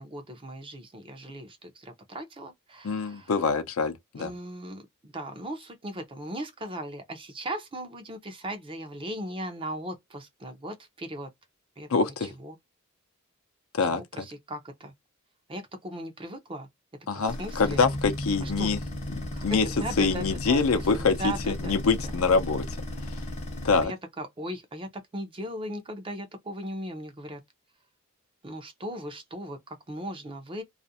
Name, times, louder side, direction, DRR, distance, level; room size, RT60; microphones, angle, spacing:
voice 1, 0.0-3.3 4.2-11.3 11.8-11.9 12.2-12.6 13.8-14.9 15.5-16.7 17.1-17.8 18.4-18.7 19.3-20.6 20.9-21.9 23.8-27.4 28.4-30.6, right 1 dB, 25° right, 0.6 m, -38 dB
voice 2, 2.8-4.3 11.9-12.3 13.7-14.0 17.1-18.8 19.4-19.7 20.0-22.7 23.0-23.2 23.6-23.9, left 4 dB, 65° left, 0.5 m, -25 dB
sound 1, 17.3-23.8, left 1 dB, 30° left, 0.7 m, -35 dB
2.5 x 2.1 x 2.7 m
head